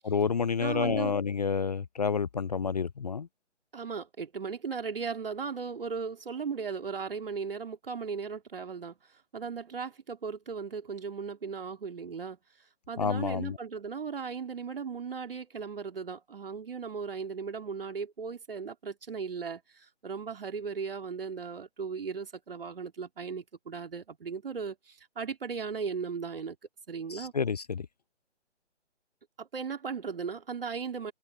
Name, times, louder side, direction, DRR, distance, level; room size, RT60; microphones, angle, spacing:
voice 1, 0.0-3.3 13.0-13.6 27.1-27.9, left 5 dB, 35° left, 0.7 m, -29 dB
voice 2, 0.6-1.2 3.7-12.4 12.9-26.6 26.9-27.3 29.4-31.1, right 5 dB, 50° right, 3.0 m, -37 dB
figure-of-eight pair, 145°, 35 cm